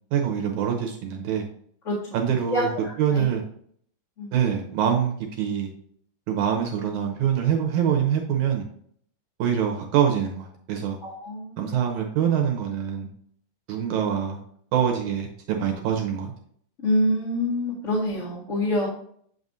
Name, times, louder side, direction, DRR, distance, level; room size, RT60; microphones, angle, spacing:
voice 1, 0.1-1.5 2.1-2.7 3.0-3.4 4.3-5.7 6.3-8.7 9.4-11.0 11.6-13.1 13.7-14.4 14.7-16.3, right 8 dB, 70° right, 3 dB, 2.1 m, -24 dB
voice 2, 1.8-2.2 2.5-3.3 4.2-4.3 11.0-11.7 16.8-18.9, left 1 dB, 30° left, -9 dB, 1.5 m, -26 dB
7.8 x 5.4 x 2.7 m, 0.62 s
omnidirectional pair, 3.8 m